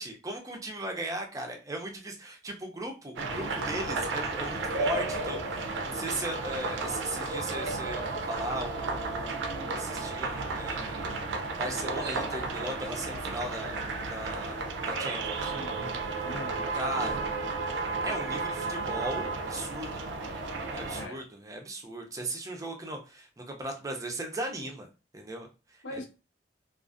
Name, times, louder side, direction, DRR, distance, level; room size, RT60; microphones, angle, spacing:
voice 1, 0.0-11.1 11.6-13.8 14.1-14.6 14.9-15.5 16.7-17.2 18.0-20.0 20.7-24.9 25.1-25.8, right 1 dB, 20° right, 0.4 m, -37 dB
sound 1, 3.2-21.1, right 3 dB, 80° right, 0.4 m, -33 dB
voice 2, 15.5-16.7 20.9-21.3 24.6-24.7 25.8-26.0, left 1 dB, 85° left, 0.7 m, -42 dB
2.4 x 2.4 x 2.4 m
head